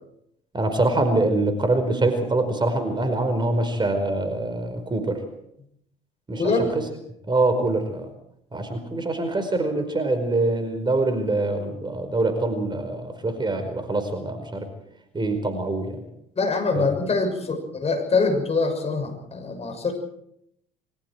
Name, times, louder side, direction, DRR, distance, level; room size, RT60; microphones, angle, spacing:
voice 1, 0.5-5.2 6.3-6.7 7.3-8.1 8.5-14.7 15.1-16.0 16.7-16.9, right 2 dB, 20° right, 8 dB, 4.8 m, -24 dB
voice 2, 6.4-6.7 16.4-19.9, left 3 dB, 30° left, 4 dB, 6.7 m, -24 dB
27.0 x 24.0 x 4.7 m, 0.75 s
figure-of-eight pair, 60°, 21 cm